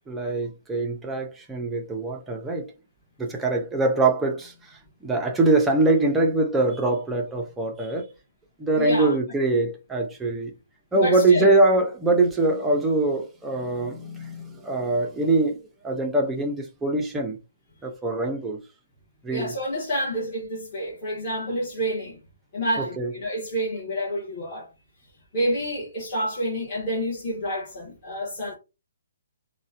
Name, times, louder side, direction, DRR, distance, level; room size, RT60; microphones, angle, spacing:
voice 1, 0.1-2.7 3.2-8.1 8.6-10.5 10.9-17.4 17.8-18.6 19.2-19.5 22.8-23.1, right 2 dB, 5° right, 0.4 m, -23 dB
voice 2, 8.8-9.2 10.9-11.5 19.3-22.2 22.5-24.7 25.3-28.6, equal, 25° left, 1.0 m, -28 dB
3.8 x 2.1 x 2.6 m
hypercardioid pair, 175°, 0 cm